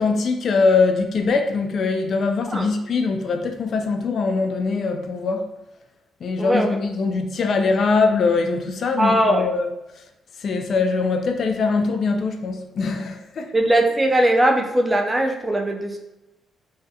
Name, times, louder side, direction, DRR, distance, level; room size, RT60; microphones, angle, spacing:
voice 1, 0.0-5.5 6.2-9.7 10.4-13.5, left 4 dB, 55° left, 0.3 m, -22 dB
voice 2, 6.4-6.8 9.0-9.5 13.5-16.0, right 1 dB, 15° right, 0.4 m, -19 dB
2.4 x 2.2 x 2.7 m
cardioid pair, 90°, 0 cm